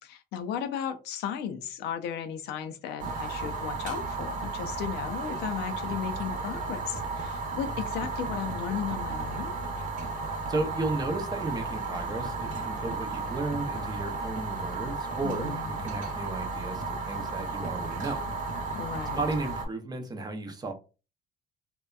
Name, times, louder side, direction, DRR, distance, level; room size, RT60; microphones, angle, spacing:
voice 1, 0.0-9.6 15.2-15.8 18.7-19.2, left 8 dB, 80° left, 0.5 m, -35 dB
Fire, 3.0-19.7, right 3 dB, 50° right, 0.8 m, -34 dB
voice 2, 10.5-18.2 19.1-20.7, right 2 dB, 25° right, 0.5 m, -34 dB
2.7 x 2.1 x 2.3 m
cardioid pair, 110°, 17 cm